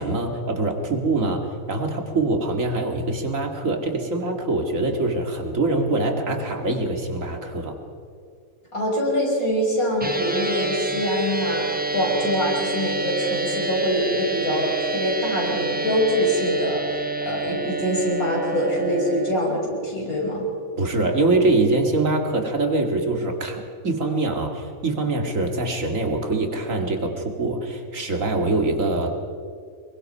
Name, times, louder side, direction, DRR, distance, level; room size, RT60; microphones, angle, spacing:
voice 1, 0.0-7.8 20.8-29.2, right 2 dB, 65° right, 3 dB, 2.4 m, -24 dB
voice 2, 8.7-20.5, equal, 85° left, -2 dB, 6.5 m, -24 dB
sound 1, 10.0-19.3, right 3 dB, 10° right, 0.8 m, -28 dB
24.0 x 22.0 x 5.6 m, 2.2 s
omnidirectional pair, 1.5 m